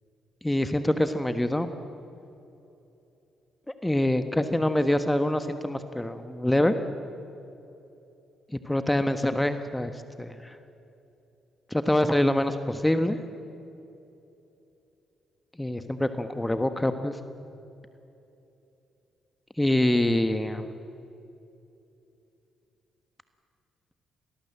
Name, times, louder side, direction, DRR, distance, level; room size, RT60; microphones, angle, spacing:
voice 1, 0.4-1.7 3.8-6.7 8.6-9.9 10.2-10.5 11.7-13.2 15.6-17.2 19.6-20.7, left 1 dB, 10° left, 9 dB, 1.4 m, -25 dB
26.0 x 19.0 x 7.8 m, 2.9 s
figure-of-eight pair, 40°, 0 cm